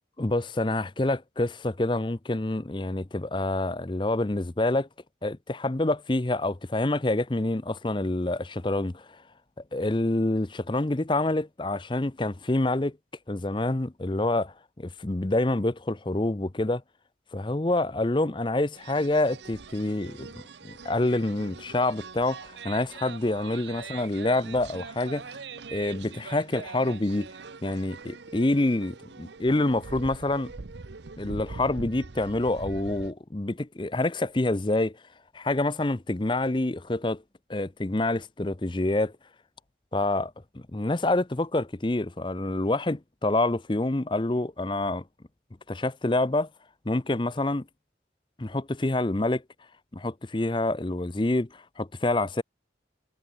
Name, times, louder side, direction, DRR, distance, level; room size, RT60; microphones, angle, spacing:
voice 1, 0.2-4.9 5.2-9.1 9.7-13.0 13.3-16.8 17.3-25.4 25.7-27.3 27.6-30.5 31.2-35.0 35.3-37.2 37.5-39.1 39.9-45.0 45.7-46.5 46.8-47.7 48.4-49.4 49.9-52.4, left 2 dB, 25° left, 0.7 m, -27 dB
sound 1, 18.7-33.1, right 4 dB, 75° right, 0.8 m, -43 dB
head